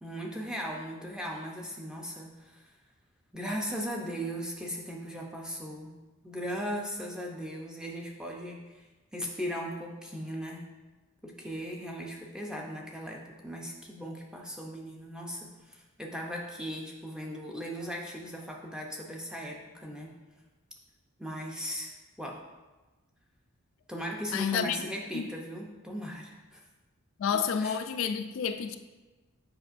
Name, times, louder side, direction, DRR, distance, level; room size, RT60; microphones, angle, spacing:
voice 1, 0.0-2.7 3.3-5.9 6.2-10.7 11.2-20.1 21.2-22.4 23.9-26.6 27.3-27.8, equal, 5° right, 0.6 m, -38 dB
voice 2, 24.3-24.8 25.1-25.3 27.2-28.8, left 7 dB, 65° left, 0.3 m, -29 dB
7.6 x 5.3 x 2.5 m
head